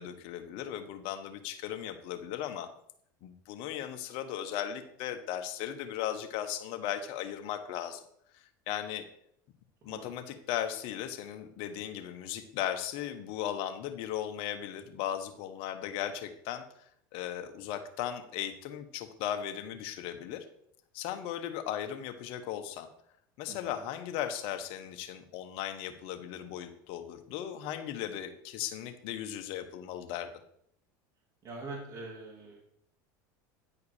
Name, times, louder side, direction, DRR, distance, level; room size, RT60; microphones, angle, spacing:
voice 1, 0.0-2.7 3.2-8.0 8.3-9.0 9.8-20.4 20.9-22.9 23.4-30.3, left 10 dB, 60° left, 8 dB, 1.1 m, -37 dB
voice 2, 31.4-32.6, right 3 dB, 35° right, -4 dB, 2.6 m, -43 dB
9.7 x 4.7 x 4.9 m, 0.70 s
supercardioid pair, 100°, 11 cm